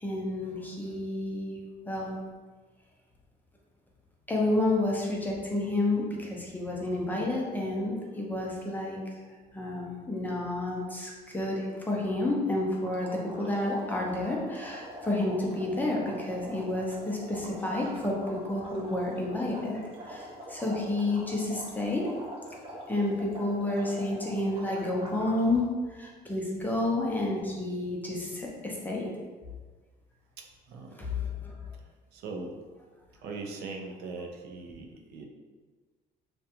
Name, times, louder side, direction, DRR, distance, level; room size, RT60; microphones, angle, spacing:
voice 1, 0.0-1.6 1.9-2.2 4.3-9.0 9.5-22.0 22.9-29.1 30.9-31.5, left 2 dB, 10° left, -3 dB, 0.5 m, -30 dB
sound 1, 12.8-25.6, equal, 35° right, 0.6 m, -44 dB
voice 2, 30.4-31.0 32.1-32.6 33.2-35.3, right 3 dB, 80° right, 2 dB, 0.4 m, -40 dB
2.4 x 2.2 x 2.8 m, 1.4 s
cardioid pair, 110°, 17 cm